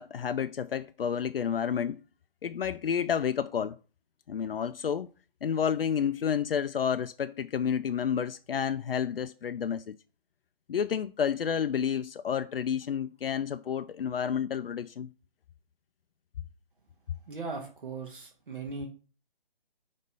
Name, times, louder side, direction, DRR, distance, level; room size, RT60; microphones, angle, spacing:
voice 1, 0.0-2.0 2.4-3.8 4.3-5.1 5.4-10.0 10.7-15.1, left 8 dB, 75° left, 0.4 m, -30 dB
voice 2, 17.2-18.9, right 4 dB, 60° right, 1.6 m, -38 dB
5.3 x 3.2 x 5.4 m
figure-of-eight pair, 150°, 29 cm